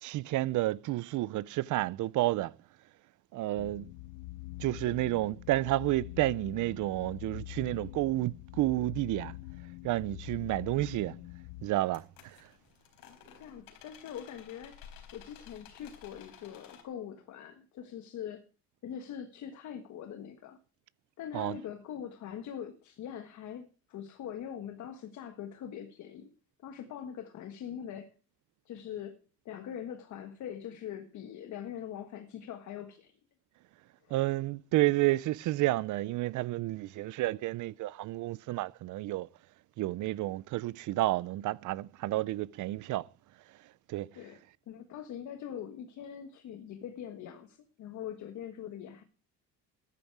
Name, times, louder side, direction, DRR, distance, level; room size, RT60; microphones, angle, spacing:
voice 1, 0.0-2.5 3.3-3.9 4.6-9.4 9.8-11.2 11.6-12.5 21.3-21.6 34.1-39.3 39.8-43.1 43.9-44.1, right 17 dB, 60° right, 0.6 m, -30 dB
sound 1, 3.6-11.7, left 20 dB, 90° left, 0.6 m, -45 dB
sound 2, 10.9-11.1 11.8-16.8, left 8 dB, 70° left, 4.3 m, -54 dB
voice 2, 13.1-14.8 15.1-18.4 18.8-20.6 21.2-26.3 26.6-28.1 28.6-29.2 29.4-33.2 34.0-34.2 44.1-44.4 44.7-49.0, left 9 dB, 55° left, 1.5 m, -42 dB
14.5 x 11.0 x 4.7 m
cardioid pair, 160°, 35 cm